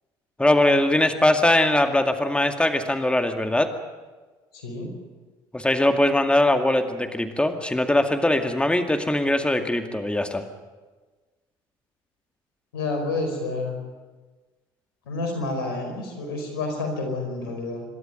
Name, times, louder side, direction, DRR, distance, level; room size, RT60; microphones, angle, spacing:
voice 1, 0.4-3.7 5.5-10.4, left 1 dB, 10° left, 6 dB, 2.1 m, -21 dB
voice 2, 4.5-4.9 12.7-13.7 15.1-17.8, left 2 dB, 90° left, 4 dB, 4.9 m, -29 dB
27.0 x 12.5 x 9.3 m, 1.3 s
hypercardioid pair, 65°, 12 cm